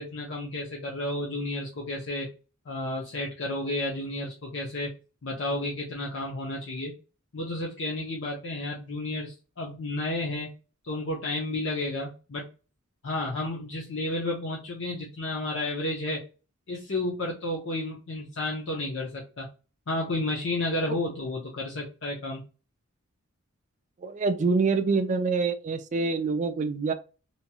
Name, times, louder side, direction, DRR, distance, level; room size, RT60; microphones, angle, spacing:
voice 1, 0.0-2.3 2.7-4.9 5.2-6.9 7.3-10.5 10.8-12.4 13.0-16.2 16.7-19.5 19.9-22.4, left 2 dB, 60° left, 0.7 m, -31 dB
voice 2, 24.0-26.9, right 4 dB, 35° right, 0.3 m, -26 dB
2.9 x 2.8 x 2.2 m
head